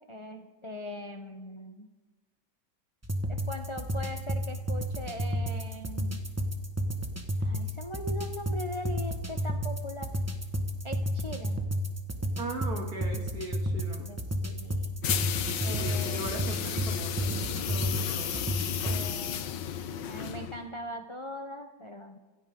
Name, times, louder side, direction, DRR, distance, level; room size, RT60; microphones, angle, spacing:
voice 1, 0.1-1.9 3.3-6.2 7.4-10.1 10.8-11.6 14.1-14.2 14.4-15.0 15.6-16.2 18.8-19.8 20.1-22.2, left 1 dB, 30° left, 5 dB, 0.5 m, -40 dB
sound 1, 3.0-19.1, equal, 10° right, 1.1 m, -32 dB
voice 2, 12.4-14.2 15.6-18.5, right 2 dB, 55° right, 0 dB, 2.9 m, -39 dB
sound 2, 15.0-20.7, left 9 dB, 90° left, 1.5 m, -33 dB
26.5 x 14.5 x 3.7 m, 1.2 s
omnidirectional pair, 1.9 m